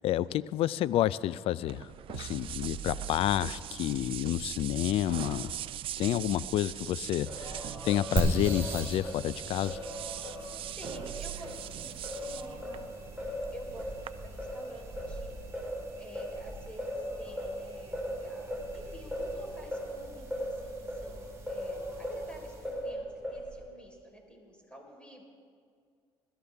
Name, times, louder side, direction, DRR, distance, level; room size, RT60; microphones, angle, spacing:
voice 1, 0.0-5.5 6.0-9.8, left 13 dB, 70° left, 19 dB, 0.4 m, -30 dB
sound 1, 1.7-14.1, right 11 dB, 60° right, 0.5 m, -41 dB
Singing, 7.3-11.6 12.0-22.3 22.6-23.7, equal, 10° right, 3.8 m, -39 dB
sound 2, 8.2-22.9, right 2 dB, 30° right, 4.3 m, -40 dB
voice 2, 10.8-12.8 13.5-15.4 16.0-25.2, equal, 10° left, 0 dB, 4.2 m, -50 dB
22.0 x 13.5 x 3.5 m, 2.1 s
supercardioid pair, 80°, 10 cm